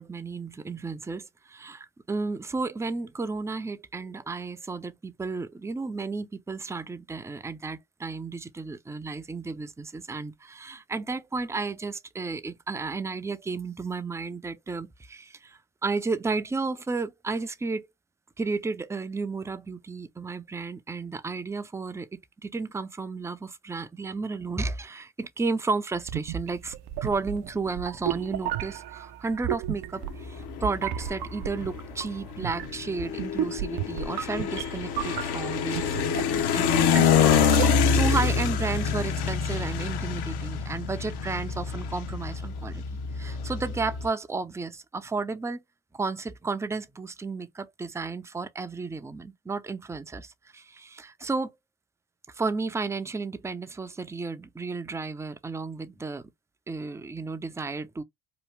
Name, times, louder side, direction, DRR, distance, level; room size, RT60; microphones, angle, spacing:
voice 1, 0.0-17.9 18.4-22.1 22.4-26.7 27.0-42.8 43.1-45.6 45.9-51.5 52.3-56.2 56.7-58.0, right 4 dB, 5° right, 0.4 m, -33 dB
sound 1, 26.0-38.1, right 11 dB, 55° right, 0.5 m, -34 dB
sound 2, 30.0-44.1, left 6 dB, 55° left, 0.8 m, -27 dB
3.0 x 2.3 x 3.2 m
supercardioid pair, 85°, 46 cm